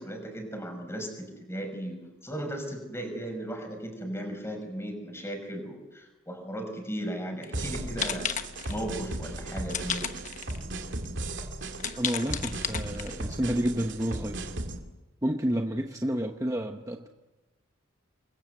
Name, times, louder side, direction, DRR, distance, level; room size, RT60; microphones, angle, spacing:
voice 1, 0.0-8.3 8.7-10.1, right 1 dB, 15° left, 4 dB, 5.9 m, -36 dB
sound 1, 7.4-7.6 8.0-8.8 9.7-10.6 11.0-11.1 11.7-13.3, left 7 dB, 35° left, 1.2 m, -33 dB
sound 2, 7.5-14.8, right 2 dB, 60° right, 2.7 m, -36 dB
voice 2, 12.0-14.4 15.2-17.1, equal, 15° right, 4 dB, 1.0 m, -30 dB
28.0 x 21.5 x 7.9 m, 1.1 s
head